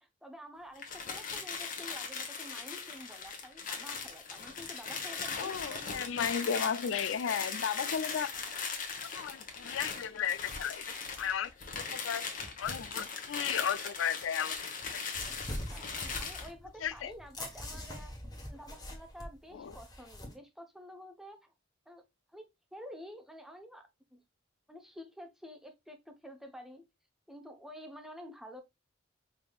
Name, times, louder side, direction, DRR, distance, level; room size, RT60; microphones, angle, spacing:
voice 1, 0.0-6.1 15.7-18.1 18.5-21.5 21.9-22.0 22.3-24.2 24.7-26.8 27.3-28.6, equal, ahead, 0.6 m, -50 dB
sound 1, 0.7-16.5, left 5 dB, 45° left, 1.0 m, -39 dB
voice 2, 5.4-8.3 9.1-10.8 11.2-11.5 11.9-14.7 16.8-17.1 19.5-19.8, left 8 dB, 80° left, 0.4 m, -34 dB
sound 2, 15.1-20.3, left 1 dB, 20° left, 1.2 m, -43 dB
5.1 x 3.5 x 2.3 m
head